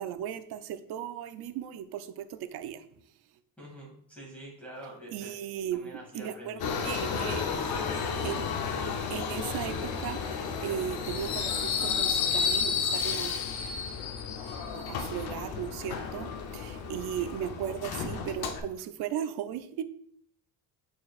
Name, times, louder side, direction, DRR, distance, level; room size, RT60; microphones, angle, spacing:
voice 1, 0.0-2.9 5.1-7.6 8.1-8.5 9.1-13.5 14.7-19.8, right 10 dB, 80° right, 11 dB, 0.6 m, -36 dB
voice 2, 3.6-5.3 5.7-6.6 17.2-17.3, right 1 dB, 5° left, -6 dB, 2.2 m, -46 dB
Subway metro underground, 6.6-18.6, left 6 dB, 70° left, 0.8 m, -32 dB
8.4 x 4.6 x 2.4 m, 0.67 s
cardioid pair, 120°, 38 cm